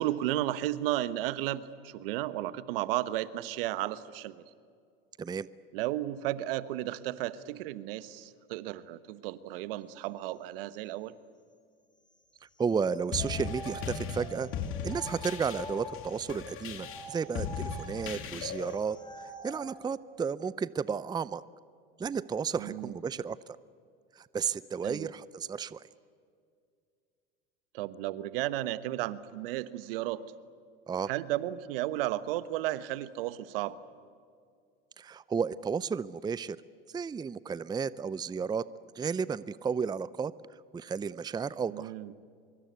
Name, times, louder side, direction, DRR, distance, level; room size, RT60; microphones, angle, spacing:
voice 1, 0.0-4.4 5.7-11.1 22.6-22.9 24.8-25.1 27.7-30.2 31.1-33.8 41.7-42.1, right 14 dB, 70° right, 15 dB, 1.2 m, -33 dB
voice 2, 12.6-14.5 14.8-21.4 22.0-23.6 24.2-25.8 30.9-31.1 35.0-36.6 36.9-38.6 38.9-40.3 40.7-41.9, right 6 dB, 15° right, 19 dB, 0.6 m, -33 dB
sound 1, 12.8-16.2 16.7-19.7, equal, 15° left, 4.6 m, -45 dB
sound 2, 13.1-18.8, left 6 dB, 45° left, 2.8 m, -38 dB
25.0 x 23.5 x 8.2 m, 2.3 s
hypercardioid pair, 90°, 29 cm